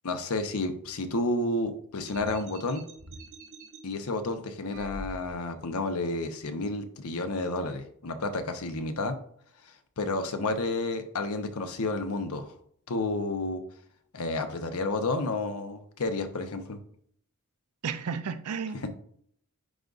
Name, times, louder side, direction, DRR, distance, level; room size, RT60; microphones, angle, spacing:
voice 1, 0.0-2.8 3.8-9.2 9.6-12.5 12.9-13.6 14.1-16.8, left 2 dB, 80° left, 0.8 m, -31 dB
sound 1, 2.1-3.8 4.7-5.6, right 1 dB, 65° right, 1.2 m, -45 dB
voice 2, 17.8-18.9, right 6 dB, 90° right, 0.5 m, -33 dB
10.0 x 3.9 x 2.4 m
head